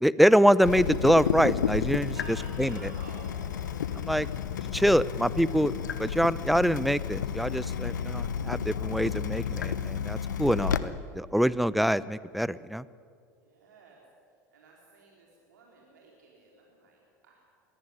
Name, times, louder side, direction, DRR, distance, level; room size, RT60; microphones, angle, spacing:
voice 1, 0.0-2.1 2.6-2.7 4.1-4.2 4.7-5.7 6.0-12.8, equal, ahead, 17 dB, 0.7 m, -24 dB
Water tap faucet / Drip, 0.6-10.8, left 8 dB, 85° left, 1.0 m, -32 dB
voice 2, 2.1-4.8 13.4-14.0 14.5-17.5, right 3 dB, 80° right, -2 dB, 4.1 m, -52 dB
22.0 x 14.5 x 9.7 m, 2.2 s
hypercardioid pair, 80°, 10 cm